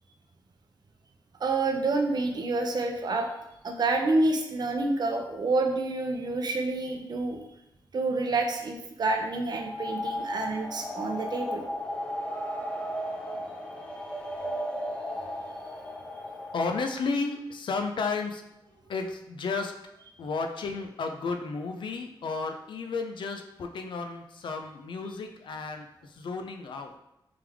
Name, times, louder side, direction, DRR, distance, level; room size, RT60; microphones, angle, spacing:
voice 1, 1.4-3.3 3.6-7.4 7.9-11.6, right 2 dB, 55° right, 3 dB, 0.5 m, -28 dB
sound 1, 9.5-17.2, equal, 10° left, 0.5 m, -35 dB
voice 2, 16.5-18.4 18.9-19.7 20.2-26.9, left 4 dB, 70° left, 5 dB, 0.4 m, -33 dB
3.4 x 3.3 x 3.4 m, 0.84 s
wide cardioid pair, 170°, 9 cm